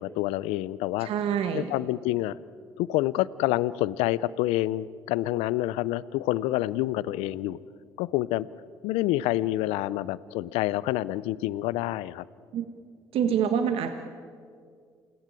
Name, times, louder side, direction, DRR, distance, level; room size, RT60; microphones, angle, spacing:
voice 1, 0.0-1.1 1.5-2.4 2.8-7.6 8.0-8.5 8.8-12.2, left 16 dB, 80° left, 19 dB, 0.6 m, -27 dB
voice 2, 1.0-1.7 12.5-12.6 13.1-13.9, right 8 dB, 70° right, 7 dB, 1.6 m, -26 dB
28.5 x 18.5 x 9.0 m, 2.1 s
hypercardioid pair, 60°, 10 cm